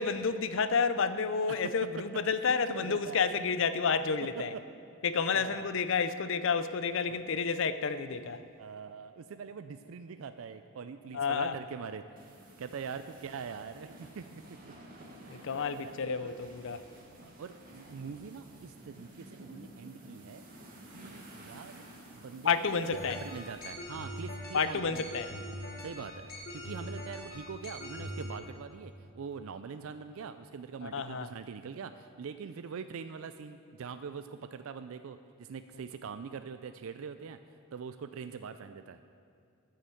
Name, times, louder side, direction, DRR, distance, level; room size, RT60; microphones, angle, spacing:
voice 1, 0.0-4.5 5.0-8.4 11.1-11.5 15.3-16.8 22.4-23.2 24.5-25.3 30.8-31.3, left 5 dB, 60° left, 0.5 m, -30 dB
voice 2, 1.5-2.0 2.4-3.2 4.4-4.6 5.1-5.7 7.1-7.4 8.6-12.3 12.6-14.7 15.1-15.4 15.7-16.6 17.2-20.4 20.9-21.9 22.1-25.2 25.8-37.4 37.7-39.0, right 6 dB, 70° right, 0.4 m, -43 dB
sound 1, 12.2-23.7, right 1 dB, 40° right, 1.8 m, -52 dB
sound 2, 22.9-28.3, left 1 dB, 45° left, 1.5 m, -42 dB
12.5 x 6.5 x 7.7 m
head